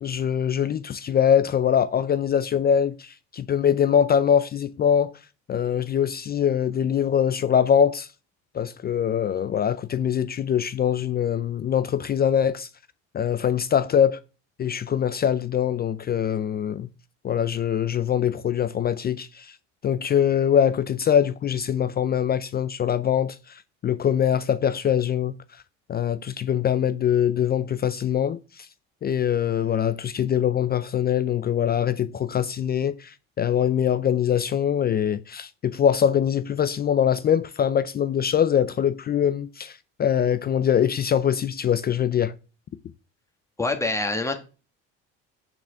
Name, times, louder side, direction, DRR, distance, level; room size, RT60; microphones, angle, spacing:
voice 1, 0.0-5.1 5.5-8.1 8.5-12.7 13.1-14.2 14.6-16.9 17.2-19.6 19.8-25.3 25.9-28.7 29.0-42.3, left 8 dB, 30° left, 0.4 m, -23 dB
voice 2, 43.6-44.3, left 2 dB, 10° left, 1.5 m, -25 dB
6.1 x 5.7 x 3.4 m
supercardioid pair, 90°, 34 cm